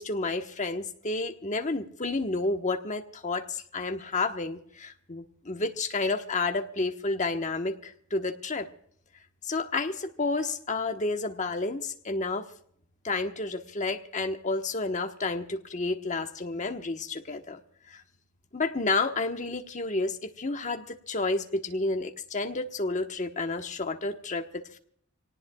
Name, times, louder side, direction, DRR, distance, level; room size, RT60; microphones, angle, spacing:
voice 1, 0.0-8.7 9.4-12.5 13.0-17.6 17.9-18.0 18.5-24.8, left 3 dB, 35° left, 5 dB, 1.2 m, -30 dB
26.5 x 18.5 x 2.3 m, 0.63 s
head